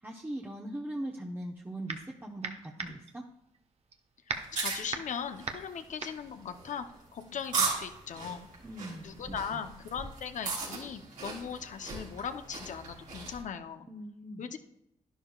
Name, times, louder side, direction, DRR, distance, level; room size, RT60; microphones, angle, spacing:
voice 1, 0.0-3.3 8.6-9.6 13.9-14.4, right 1 dB, 15° right, -1 dB, 1.0 m, -40 dB
sound 1, 1.4-2.1 2.4-7.4, right 4 dB, 55° right, 1.1 m, -39 dB
voice 2, 4.3-6.9 7.1-8.5 9.0-13.9 14.4-14.6, left 7 dB, 75° left, 8 dB, 0.8 m, -39 dB
sound 2, 4.3-13.4, right 4 dB, 85° right, 3.5 m, -38 dB
11.0 x 10.5 x 2.4 m, 0.81 s
cardioid pair, 60°, 13 cm